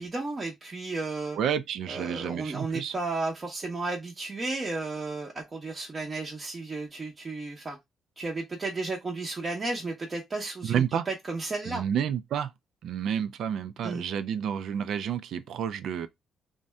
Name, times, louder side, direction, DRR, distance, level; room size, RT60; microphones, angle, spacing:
voice 1, 0.0-1.4 1.9-7.8 8.2-11.8 13.8-14.0, right 3 dB, 30° right, 0.7 m, -33 dB
voice 2, 1.4-2.9 10.6-11.1 11.7-12.5 12.8-16.1, right 8 dB, 75° right, 0.3 m, -30 dB
2.6 x 2.1 x 3.3 m
cardioid pair, 90°, 0 cm